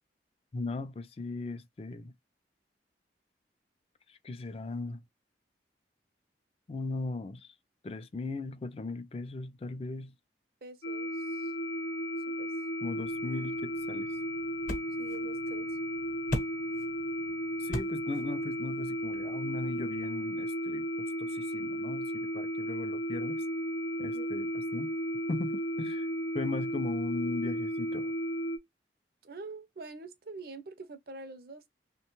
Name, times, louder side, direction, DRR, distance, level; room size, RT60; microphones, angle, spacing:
voice 1, 0.5-2.1 4.1-5.0 6.7-7.5 7.8-10.1 12.8-14.1 17.6-23.4 24.0-24.9 25.3-26.1 26.3-28.1, left 3 dB, 35° left, 0.4 m, -38 dB
voice 2, 10.6-11.5 12.3-12.5 15.0-15.8 24.0-24.3 29.2-31.7, right 3 dB, 55° right, 0.5 m, -46 dB
sound 1, 10.8-28.6, equal, 80° left, 0.6 m, -34 dB
sound 2, 13.0-20.1, equal, 50° left, 0.8 m, -42 dB
3.1 x 2.2 x 2.9 m
head